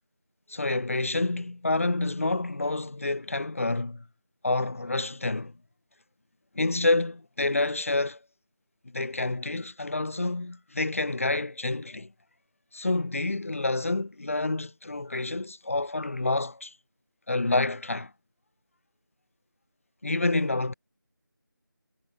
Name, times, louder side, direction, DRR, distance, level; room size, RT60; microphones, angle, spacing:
voice 1, 0.5-4.0 4.4-5.5 6.5-8.2 8.9-12.1 12.7-16.7 17.3-18.1 20.0-20.7, left 2 dB, 40° left, 4.7 m, -28 dB
figure-of-eight pair, 175°, 11 cm